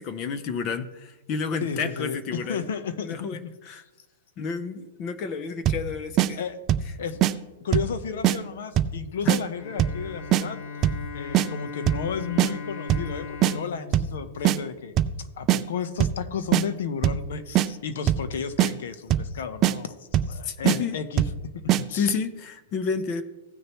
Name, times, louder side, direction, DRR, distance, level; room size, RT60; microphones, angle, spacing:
voice 1, 0.0-2.7 3.0-3.8 4.4-6.4 9.2-9.4 20.4-21.0 21.9-23.2, left 5 dB, 30° left, 12 dB, 0.6 m, -30 dB
voice 2, 1.6-3.3 6.3-6.6 7.0-7.2 7.6-10.6 11.1-21.2 21.6-22.2, left 6 dB, 70° left, 11 dB, 0.9 m, -33 dB
sound 1, 5.7-5.9 6.2-6.3 6.7-6.9 7.2-7.3 7.7-8.0 8.2-8.4 8.8-9.0 9.3-9.4 9.8-10.0 10.3-10.4 10.8-11.1 11.3-11.5 11.9-12.1 12.4-12.5 12.9-13.1 13.4-13.5 13.9-14.2 14.5-14.6 15.0-15.2 15.5-15.6 16.0-16.2 16.5-16.6 17.0-17.3 17.6-17.7 18.1-18.3 18.6-18.7 19.1-19.3 19.6-19.8 20.1-20.4 20.7-20.8 21.2-21.4 21.7-21.8, right 12 dB, 25° right, 0.4 m, -21 dB
Bowed string instrument, 9.5-15.2, left 5 dB, 50° left, 1.5 m, -39 dB
16.5 x 6.5 x 3.1 m, 1.1 s
supercardioid pair, 160°, 0 cm